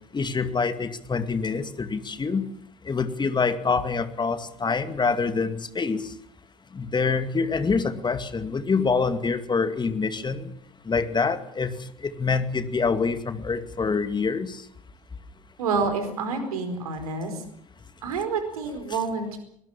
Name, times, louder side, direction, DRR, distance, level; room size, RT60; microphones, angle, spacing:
voice 1, 0.1-2.5 2.9-6.0 6.7-10.5 10.9-11.7 12.0-14.6, left 4 dB, 25° left, 11 dB, 2.3 m, -26 dB
voice 2, 15.6-17.4 18.0-19.4, right 4 dB, 75° right, 8 dB, 4.6 m, -28 dB
24.0 x 19.5 x 7.2 m, 0.70 s
figure-of-eight pair, 60°, 19 cm